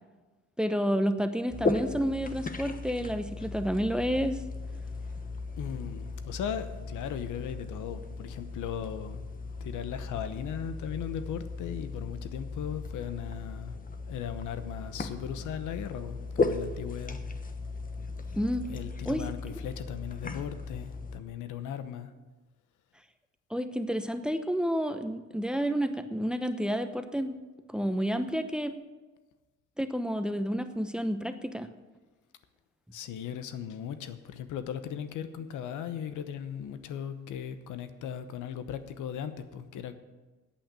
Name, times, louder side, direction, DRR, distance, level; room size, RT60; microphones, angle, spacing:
voice 1, 0.6-4.4 18.4-18.7 19.1-19.2 23.5-27.4 27.7-28.7 29.8-31.7, equal, 5° right, 9 dB, 0.8 m, -30 dB
sound 1, 1.5-21.2, left 3 dB, 30° left, 1.1 m, -37 dB
voice 2, 5.6-9.2 9.6-13.8 14.1-17.2 18.7-22.1 32.9-39.9, left 9 dB, 85° left, 11 dB, 1.0 m, -37 dB
8.6 x 8.6 x 8.8 m, 1.2 s
cardioid pair, 90°, 30 cm